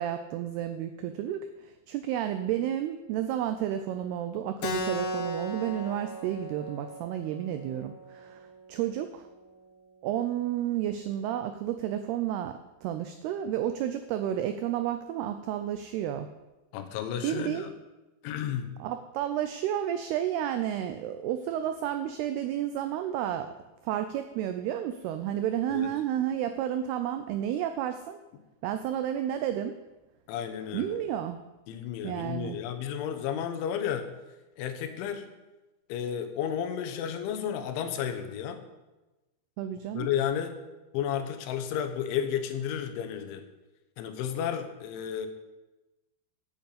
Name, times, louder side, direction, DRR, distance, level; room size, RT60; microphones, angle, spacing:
voice 1, 0.0-8.4 8.7-9.3 10.0-16.3 17.2-17.7 18.8-23.5 23.8-28.2 28.6-29.7 30.7-31.4 32.0-32.6 39.6-40.1, right 11 dB, 90° right, 8 dB, 2.3 m, -31 dB
Keyboard (musical), 4.6-9.7, equal, 65° left, 2.7 m, -37 dB
voice 2, 16.7-17.7 18.2-18.7 25.7-25.9 30.3-31.0 31.7-34.1 34.6-35.3 35.9-38.6 39.9-40.6 40.9-43.4 44.0-45.3, left 9 dB, 85° left, 8 dB, 3.5 m, -32 dB
8.7 x 8.2 x 8.5 m, 1.1 s
omnidirectional pair, 5.3 m